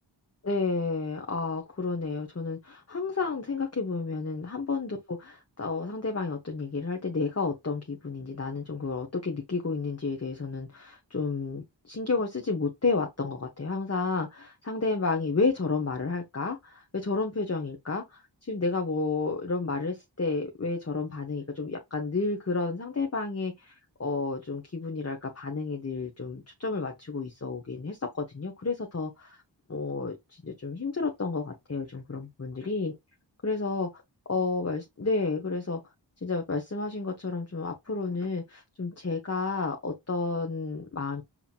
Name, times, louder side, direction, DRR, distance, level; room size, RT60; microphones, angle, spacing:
voice 1, 0.4-29.4 29.7-33.0 33.4-33.9 34.3-35.8 36.2-41.2, left 3 dB, 35° left, 0.9 m, -31 dB
5.6 x 2.9 x 2.4 m
wide cardioid pair, 70°, 45 cm